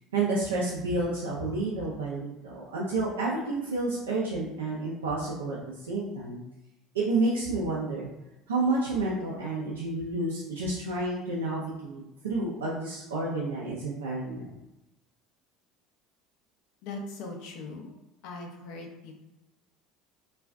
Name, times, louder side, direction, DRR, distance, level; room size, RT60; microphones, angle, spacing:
voice 1, 0.1-6.4 6.9-8.1 8.5-14.5, right 2 dB, 90° right, -5 dB, 0.5 m, -30 dB
voice 2, 16.8-17.9 18.2-19.2, left 3 dB, 70° left, 2 dB, 0.6 m, -40 dB
2.4 x 2.3 x 3.3 m, 0.93 s
hypercardioid pair, 75°, 0 cm